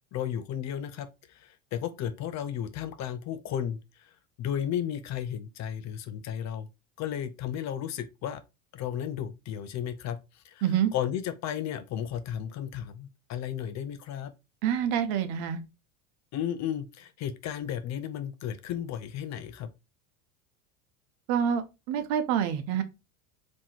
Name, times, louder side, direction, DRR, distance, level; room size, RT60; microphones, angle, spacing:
voice 1, 0.1-4.1 4.4-6.7 7.0-8.4 8.7-10.6 10.9-14.3 16.3-19.7, left 9 dB, 35° left, 0.6 m, -34 dB
voice 2, 14.6-15.6 21.3-22.8, right 9 dB, 55° right, 0.9 m, -27 dB
3.6 x 3.1 x 4.4 m
hypercardioid pair, 85°, 46 cm